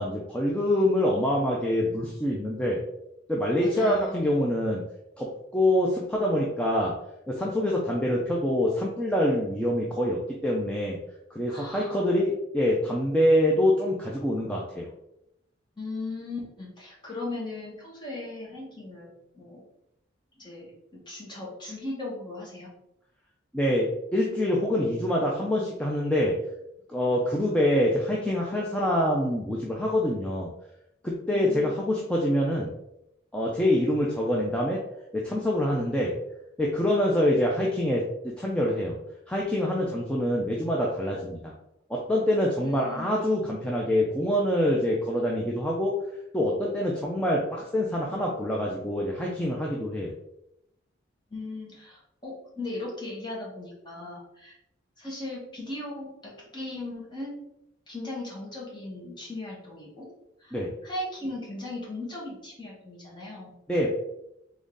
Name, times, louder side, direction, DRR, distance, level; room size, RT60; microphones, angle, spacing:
voice 1, 0.0-2.8 3.3-4.8 5.2-6.9 7.3-11.0 11.3-14.9 23.5-26.4 26.9-30.5 31.0-32.7 33.3-34.8 35.1-36.1 36.6-39.0 39.3-41.5 41.9-45.9 46.3-50.1 60.5-60.7 63.7-63.9, left 1 dB, 5° left, -3 dB, 0.5 m, -25 dB
voice 2, 3.6-4.3 11.5-12.0 15.8-19.6 20.4-22.7 31.3-31.9 42.6-43.1 51.3-54.5 55.0-57.4 57.9-60.1 60.4-63.6, left 2 dB, 25° left, -4 dB, 1.4 m, -38 dB
3.9 x 3.5 x 3.8 m, 0.82 s
head